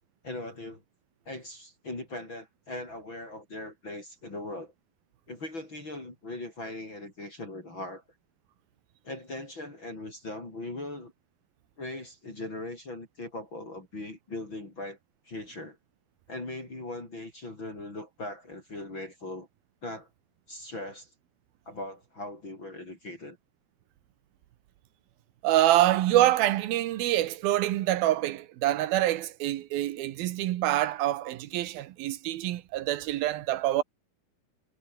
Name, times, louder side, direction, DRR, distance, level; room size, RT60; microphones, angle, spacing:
voice 1, 0.2-0.8 1.3-4.7 5.3-8.0 9.0-11.1 11.8-15.0 15.2-15.8 16.3-19.5 19.8-20.1 20.5-21.1 21.7-23.4, left 2 dB, 30° left, 6.6 m, -39 dB
voice 2, 25.4-33.8, right 14 dB, 80° right, 2.9 m, -26 dB
omnidirectional pair, 4.3 m